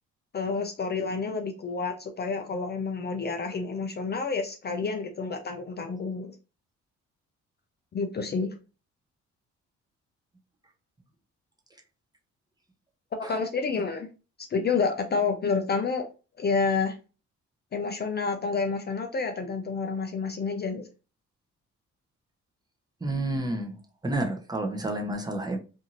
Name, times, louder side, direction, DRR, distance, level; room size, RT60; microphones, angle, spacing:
voice 1, 0.3-6.3 7.9-8.5 13.3-14.1 14.5-16.1 16.4-17.0 17.7-20.8, left 4 dB, 35° left, 5 dB, 0.4 m, -29 dB
voice 2, 23.0-23.8 24.0-25.6, right 1 dB, 15° right, 2 dB, 0.6 m, -30 dB
2.6 x 2.5 x 2.8 m, 0.33 s
cardioid pair, 90°, 30 cm